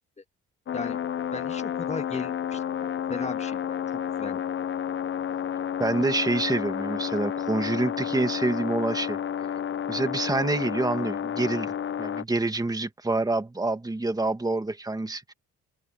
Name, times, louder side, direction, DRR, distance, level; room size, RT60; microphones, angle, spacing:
sound 1, 0.7-12.2, left 9 dB, 40° left, 0.6 m, -31 dB
voice 1, 1.3-3.8 4.2-4.4, left 3 dB, 20° left, 1.8 m, -36 dB
voice 2, 5.8-9.2 9.9-15.3, right 2 dB, 10° right, 1.8 m, -27 dB
open air
cardioid pair, 90°, 30 cm